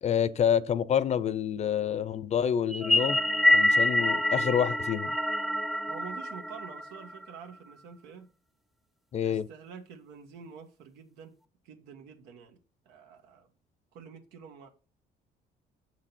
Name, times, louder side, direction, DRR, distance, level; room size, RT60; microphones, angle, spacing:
voice 1, 0.0-3.2 3.5-5.1 9.1-9.5, left 8 dB, 40° left, 0.6 m, -27 dB
sound 1, 2.7-7.2, left 1 dB, ahead, 0.4 m, -26 dB
voice 2, 5.9-8.3 9.2-11.3 11.6-12.6 12.8-13.5 13.9-14.7, right 6 dB, 90° right, 1.4 m, -47 dB
7.2 x 6.2 x 4.3 m
cardioid pair, 110°, 17 cm